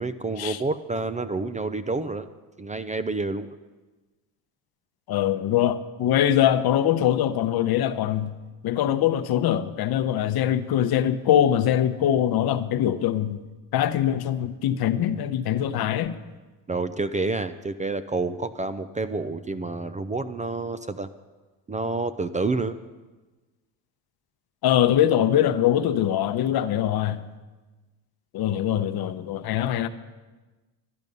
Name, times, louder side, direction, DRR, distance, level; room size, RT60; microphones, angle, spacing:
voice 1, 0.0-2.3 2.6-3.6 16.7-21.1 21.7-22.8, right 3 dB, 15° right, 0.4 m, -28 dB
voice 2, 5.1-8.4 8.6-13.4 13.7-16.2 24.6-27.2 28.3-29.9, left 11 dB, 55° left, 0.8 m, -23 dB
12.5 x 10.5 x 5.3 m
supercardioid pair, 75°, 45 cm